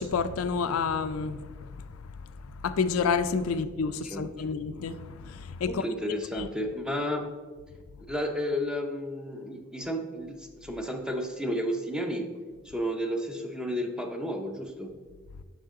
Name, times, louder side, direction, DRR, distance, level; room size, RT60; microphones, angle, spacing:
voice 1, 0.0-5.9 6.3-6.5, left 5 dB, 90° left, 0.4 m, -30 dB
voice 2, 5.7-7.3 8.1-12.3 12.6-14.9, equal, 5° right, 0.6 m, -32 dB
7.5 x 5.4 x 3.6 m
head